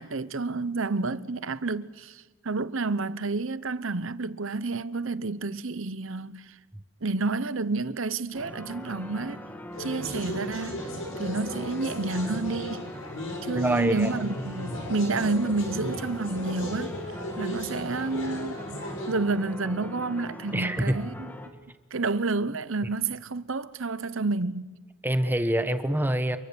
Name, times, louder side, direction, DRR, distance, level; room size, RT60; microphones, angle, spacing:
voice 1, 0.0-6.5 7.0-9.4 9.8-10.9 11.2-12.9 13.4-17.0 17.4-18.6 19.1-21.3 21.9-24.8, right 3 dB, 65° right, 1.0 m, -29 dB
sound 1, 8.3-21.5, left 1 dB, 10° left, 2.2 m, -41 dB
sound 2, 9.7-19.1, left 1 dB, 60° left, 7.6 m, -36 dB
voice 2, 13.5-14.1 20.5-21.0 25.0-26.4, right 1 dB, 10° right, 1.1 m, -25 dB
29.0 x 23.0 x 7.0 m
head